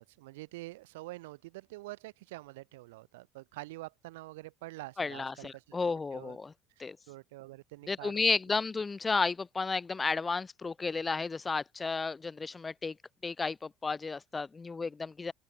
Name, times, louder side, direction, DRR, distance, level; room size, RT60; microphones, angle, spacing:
voice 1, 0.0-6.4 6.8-8.6, right 20 dB, 70° right, 5.5 m, -47 dB
voice 2, 5.0-6.5 6.8-7.0 7.9-12.9 13.2-15.3, left 4 dB, 25° left, 1.1 m, -32 dB
open air
figure-of-eight pair, 60°, 0 cm